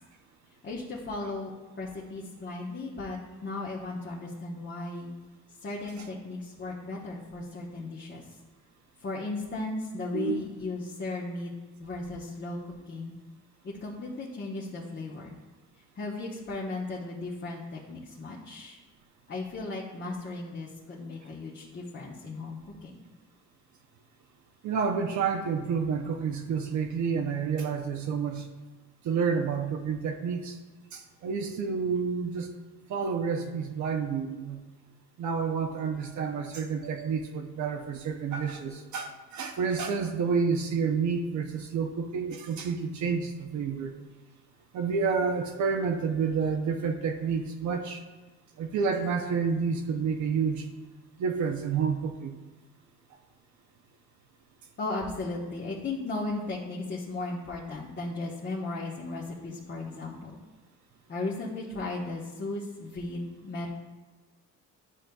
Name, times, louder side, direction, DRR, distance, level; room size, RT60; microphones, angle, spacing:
voice 1, 0.6-5.1 5.6-8.2 9.0-11.5 11.8-13.1 13.6-15.4 16.0-18.8 19.3-23.0 54.8-60.3 61.1-63.7, left 2 dB, 35° left, -5 dB, 1.0 m, -36 dB
voice 2, 24.6-28.5 29.0-30.6 30.9-32.5 32.9-34.6 35.2-43.9 44.7-48.0 48.6-50.6 51.2-52.3, right 5 dB, 70° right, 3 dB, 0.7 m, -29 dB
10.0 x 5.1 x 2.3 m, 1.3 s
cardioid pair, 90°, 30 cm